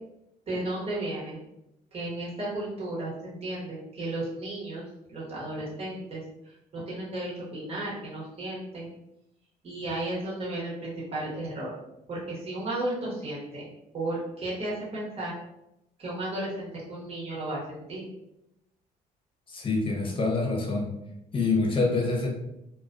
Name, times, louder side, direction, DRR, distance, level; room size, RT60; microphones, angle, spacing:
voice 1, 0.5-1.4 1.9-4.8 5.1-9.0 9.6-11.7 12.1-13.6 13.9-15.3 16.0-18.0, right 1 dB, 35° right, -6 dB, 1.0 m, -34 dB
voice 2, 19.5-20.9 21.3-22.3, left 3 dB, 30° left, -1 dB, 0.8 m, -26 dB
2.2 x 2.2 x 2.5 m, 0.87 s
supercardioid pair, 75°, 17 cm